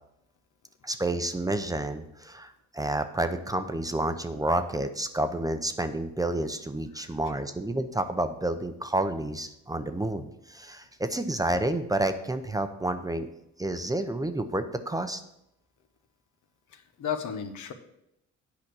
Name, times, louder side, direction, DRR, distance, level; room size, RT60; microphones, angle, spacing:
voice 1, 0.8-13.3 13.6-15.2, right 1 dB, 10° right, 9 dB, 0.6 m, -30 dB
voice 2, 6.9-7.3 16.7-17.7, left 7 dB, 75° left, 6 dB, 1.1 m, -35 dB
8.7 x 5.1 x 6.1 m, 0.81 s
cardioid pair, 90°, 30 cm